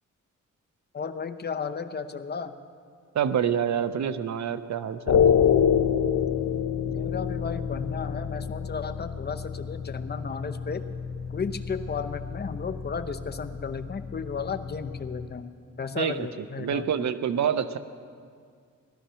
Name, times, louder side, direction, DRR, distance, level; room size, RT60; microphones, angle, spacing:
voice 1, 0.9-2.5 6.9-10.9 11.3-15.5 15.8-17.1, left 5 dB, 30° left, 8 dB, 0.7 m, -34 dB
voice 2, 3.1-5.3 16.0-16.3 16.6-17.8, right 8 dB, 65° right, 12 dB, 0.7 m, -27 dB
sound 1, 5.1-15.3, left 8 dB, 75° left, 0.9 m, -27 dB
18.0 x 12.5 x 5.7 m, 2.2 s
cardioid pair, 105°, 31 cm